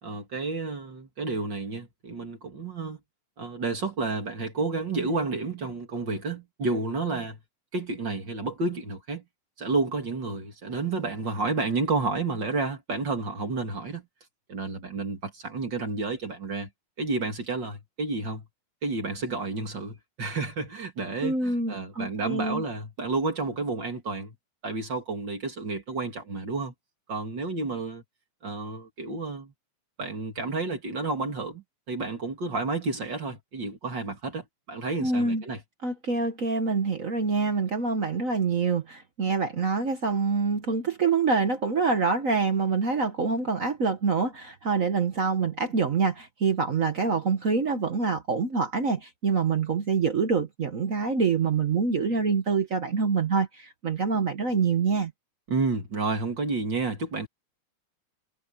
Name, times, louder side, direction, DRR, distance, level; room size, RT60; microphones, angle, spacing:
voice 1, 0.0-3.0 3.4-7.4 7.7-9.2 9.6-14.0 14.5-16.7 17.0-18.5 18.8-24.3 24.6-26.7 27.1-28.0 28.4-29.5 30.0-35.6 55.5-57.3, right 3 dB, 40° right, 3.0 m, -30 dB
voice 2, 21.2-22.6 35.0-35.4 35.8-55.1, right 4 dB, 65° right, 0.8 m, -26 dB
omnidirectional pair, 3.4 m